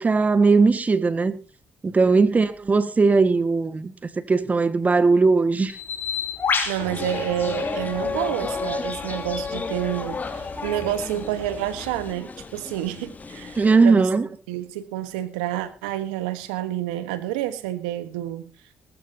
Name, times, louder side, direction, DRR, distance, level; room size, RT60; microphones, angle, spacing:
voice 1, 0.0-1.4 1.8-5.8 13.6-14.3, right 4 dB, 35° right, 1.8 m, -19 dB
Bird, 5.7-12.1, left 6 dB, 50° left, 4.4 m, -33 dB
voice 2, 6.7-14.1 14.5-18.5, right 13 dB, 90° right, 1.4 m, -29 dB
sound 1, 6.8-13.8, left 4 dB, 35° left, 2.8 m, -32 dB
19.0 x 15.0 x 2.9 m
hypercardioid pair, 50°, 5 cm